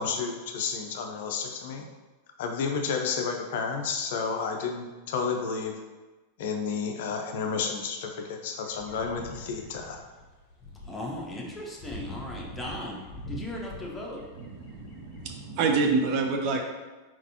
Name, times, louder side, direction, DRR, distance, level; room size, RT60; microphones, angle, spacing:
voice 1, 0.0-1.8 2.4-5.8 6.4-10.0, left 5 dB, 55° left, 3 dB, 0.5 m, -31 dB
sound 1, 8.6-15.3, equal, 35° left, 0.9 m, -44 dB
voice 2, 10.9-13.0 13.3-14.2, left 1 dB, 10° left, -3 dB, 1.0 m, -37 dB
voice 3, 14.3-16.6, right 4 dB, 45° right, 3 dB, 0.6 m, -27 dB
4.5 x 3.9 x 2.8 m, 1.2 s
figure-of-eight pair, 90°, 0 cm